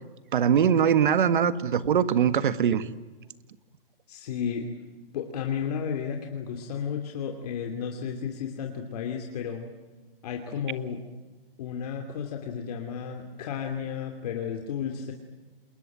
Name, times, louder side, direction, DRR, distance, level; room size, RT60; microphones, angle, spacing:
voice 1, 0.3-2.8, right 8 dB, 60° right, 13 dB, 1.7 m, -22 dB
voice 2, 4.1-4.7 5.1-9.7 10.2-11.0 11.6-15.1, left 7 dB, 40° left, 3 dB, 2.7 m, -33 dB
28.0 x 21.5 x 9.1 m, 1.2 s
hypercardioid pair, 160°, 29 cm